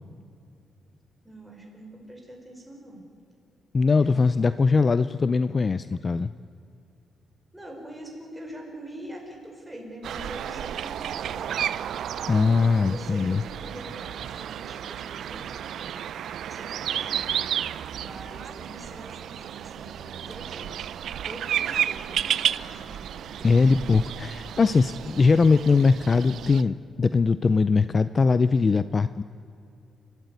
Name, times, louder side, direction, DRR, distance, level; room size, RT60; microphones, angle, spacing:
voice 1, 1.2-3.0 4.0-4.4 7.5-11.6 11.8-20.8 21.1-23.8, right 1 dB, 5° right, 0 dB, 5.3 m, -44 dB
voice 2, 3.7-6.3 12.3-13.4 23.4-29.2, left 4 dB, 35° left, 13 dB, 0.5 m, -21 dB
sound 1, 10.0-26.6, right 10 dB, 75° right, 0.5 m, -32 dB
30.0 x 13.5 x 9.6 m, 2.5 s
cardioid pair, 115°, 0 cm